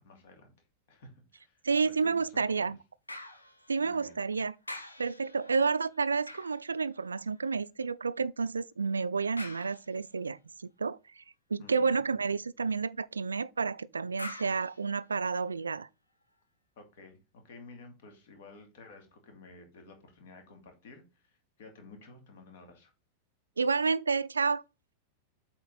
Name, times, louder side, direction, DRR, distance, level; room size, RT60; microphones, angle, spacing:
voice 1, 0.0-2.7 3.8-4.2 11.6-12.0 16.8-17.2 17.4-22.9, left 3 dB, 55° left, 2.5 m, -53 dB
voice 2, 1.6-2.8 3.7-4.5 5.0-11.2 11.5-15.9 23.6-24.6, right 4 dB, 75° right, 0.3 m, -30 dB
sound 1, 3.1-4.3 4.6-7.5 9.4-10.3 14.2-15.6 16.2-16.3, left 1 dB, 85° left, 1.0 m, -47 dB
8.0 x 4.3 x 4.0 m
figure-of-eight pair, 90°, 0 cm